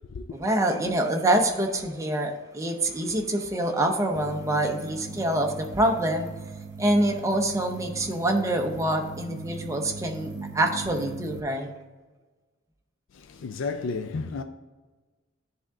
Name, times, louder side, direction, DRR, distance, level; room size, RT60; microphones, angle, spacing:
voice 1, 0.3-6.3 6.8-11.7, right 1 dB, 15° right, 0.7 m, -26 dB
sound 1, 4.1-11.4, right 4 dB, 60° right, 0.4 m, -40 dB
voice 2, 13.1-14.4, left 4 dB, 65° left, 0.4 m, -32 dB
9.9 x 3.5 x 3.7 m
head